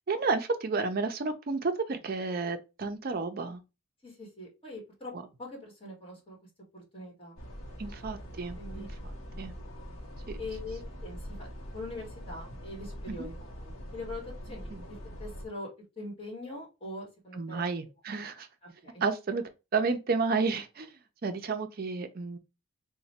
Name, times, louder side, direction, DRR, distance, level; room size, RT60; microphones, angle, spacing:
voice 1, 0.1-3.6 5.1-5.2 7.8-8.9 9.4-9.5 10.3-10.4 13.1-13.3 14.7-14.8 17.3-18.5 19.0-19.4 19.7-20.9 21.2-22.4, right 4 dB, 45° right, 0.4 m, -31 dB
voice 2, 4.0-5.1 5.4-6.4 6.7-7.4 8.6-8.9 10.4-11.5 11.7-15.7 16.0-17.6 18.6-19.0, left 2 dB, 25° left, 1.3 m, -43 dB
sound 1, 7.4-15.4, equal, 65° left, 0.8 m, -43 dB
3.0 x 2.1 x 4.1 m
head